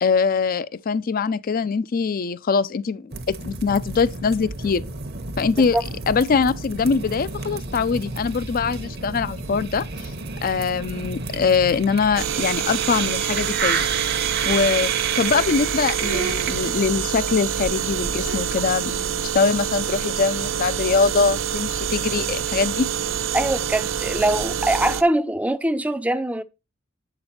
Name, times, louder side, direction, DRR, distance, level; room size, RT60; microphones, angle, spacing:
voice 1, 0.0-4.8 5.4-5.8 6.1-10.1 10.4-13.9 14.4-22.9, left 5 dB, 45° left, 0.4 m, -23 dB
sound 1, 3.1-17.0, right 6 dB, 55° right, 1.0 m, -30 dB
sound 2, 12.2-25.0, right 8 dB, 85° right, 0.6 m, -26 dB
sound 3, 16.0-17.2 18.1-19.3, right 4 dB, 65° left, 1.6 m, -36 dB
voice 2, 23.3-26.4, right 1 dB, 5° right, 0.5 m, -22 dB
7.8 x 6.0 x 4.2 m
head